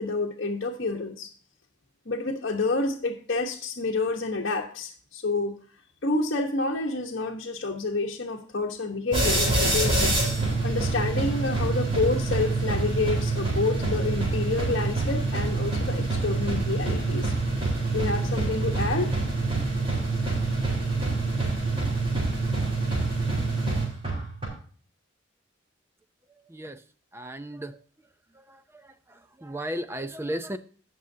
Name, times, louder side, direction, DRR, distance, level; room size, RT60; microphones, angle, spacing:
voice 1, 0.0-1.3 2.1-5.5 6.0-10.1 10.6-17.3 17.9-19.1, left 3 dB, 55° left, -2 dB, 1.2 m, -28 dB
sound 1, 9.1-24.5, right 3 dB, 30° right, 4.1 m, -26 dB
voice 2, 27.1-27.7 29.4-30.6, equal, 10° right, 11 dB, 0.6 m, -33 dB
17.0 x 6.3 x 2.8 m, 0.43 s
head